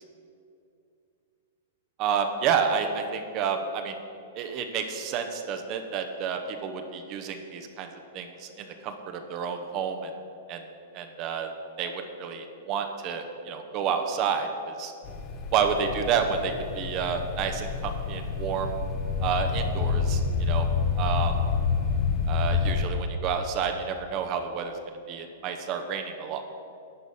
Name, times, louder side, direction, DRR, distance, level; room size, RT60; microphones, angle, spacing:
voice 1, 2.0-4.0 4.3-7.9 8.1-10.1 10.5-10.6 10.9-11.5 11.8-14.9 15.5-18.7 19.2-20.7 20.9-21.4 22.3-24.7 25.1-26.4, right 6 dB, 40° right, 5 dB, 0.8 m, -30 dB
sound 1, 15.0-22.9, left 5 dB, 40° left, 0.8 m, -28 dB
11.0 x 4.0 x 7.1 m, 2.6 s
hypercardioid pair, 120°, 0 cm